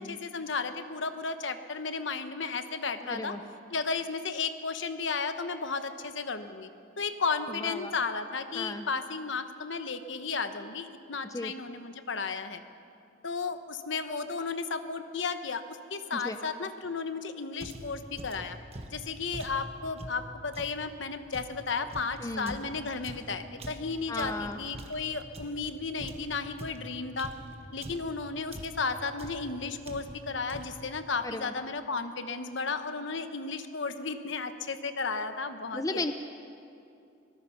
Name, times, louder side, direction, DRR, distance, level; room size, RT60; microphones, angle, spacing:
voice 1, 0.0-3.4 3.7-6.7 7.0-12.6 13.2-18.6 18.9-27.3 27.7-36.0, left 4 dB, 65° left, 9 dB, 1.1 m, -34 dB
voice 2, 3.0-3.4 7.6-7.9 8.5-8.9 11.2-11.5 16.1-16.4 22.2-22.6 24.1-24.6 31.2-31.5 35.7-36.1, left 2 dB, 15° left, 8 dB, 0.6 m, -35 dB
sound 1, 17.6-20.8 21.3-25.7 26.0-28.2 28.5-28.9 29.2-29.5 29.8-30.2 30.5-30.9, right 1 dB, 30° right, 1.3 m, -44 dB
23.5 x 19.5 x 5.9 m, 2.6 s
head